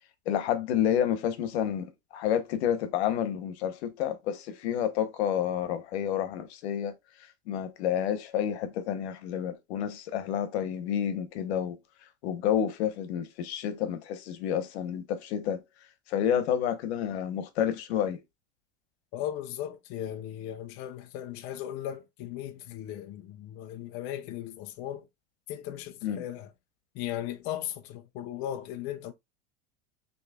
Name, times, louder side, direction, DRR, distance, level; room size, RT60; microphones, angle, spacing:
voice 1, 0.3-6.9 7.5-11.8 12.2-15.6 16.1-18.2 26.0-26.2, left 9 dB, 75° left, 1.0 m, -29 dB
voice 2, 19.1-25.1 25.5-26.5 26.9-29.1, left 11 dB, 35° left, 0.4 m, -37 dB
6.2 x 3.0 x 2.3 m
supercardioid pair, 160°, 33 cm